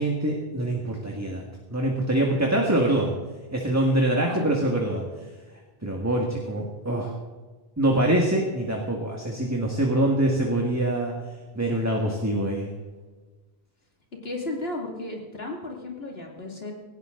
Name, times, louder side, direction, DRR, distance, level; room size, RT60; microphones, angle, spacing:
voice 1, 0.0-1.4 1.7-3.1 3.5-5.0 5.8-7.1 7.8-11.1 11.5-12.7, right 1 dB, 15° right, -1 dB, 1.9 m, -24 dB
voice 2, 14.2-16.7, left 2 dB, 75° left, 0 dB, 2.8 m, -34 dB
17.5 x 16.5 x 3.9 m, 1.3 s
omnidirectional pair, 1.0 m